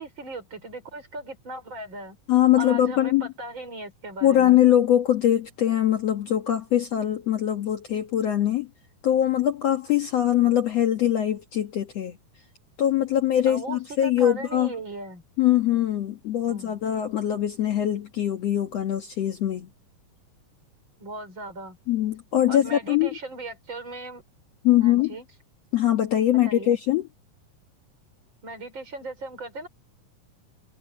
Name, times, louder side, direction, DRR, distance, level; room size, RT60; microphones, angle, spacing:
voice 1, 0.0-2.2 2.6-4.6 13.5-15.2 16.5-16.8 21.0-21.8 22.5-24.2 24.8-25.3 26.5-26.7 28.4-29.7, right 2 dB, 35° right, 5.5 m, -37 dB
voice 2, 2.3-3.2 4.2-8.7 9.0-12.2 12.8-14.7 15.4-19.7 21.9-23.1 24.6-25.1 25.7-27.1, left 11 dB, 60° left, 2.1 m, -22 dB
omnidirectional pair, 3.9 m